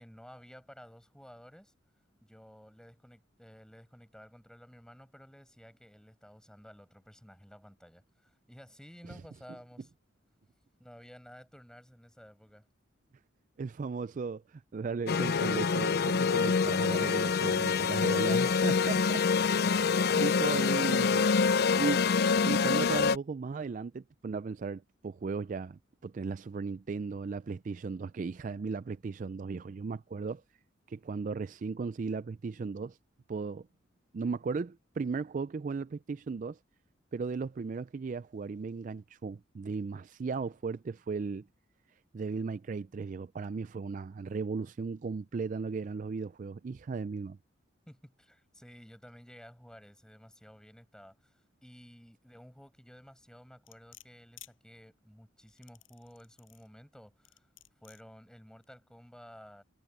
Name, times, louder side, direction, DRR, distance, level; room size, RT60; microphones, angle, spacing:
voice 1, 0.0-1.7 2.2-9.9 10.8-12.7 47.9-57.5 57.8-59.6, equal, 5° left, 7.4 m, -53 dB
voice 2, 13.6-19.2 19.7-22.0 22.4-30.4 30.9-33.0 33.3-33.7 34.1-36.6 37.1-41.5 42.1-47.4, right 4 dB, 40° right, 0.3 m, -36 dB
sound 1, 15.1-23.2, left 5 dB, 50° left, 0.4 m, -26 dB
sound 2, 53.7-54.5 55.5-56.7 57.3-58.0 58.6-58.7, left 14 dB, 85° left, 6.7 m, -54 dB
head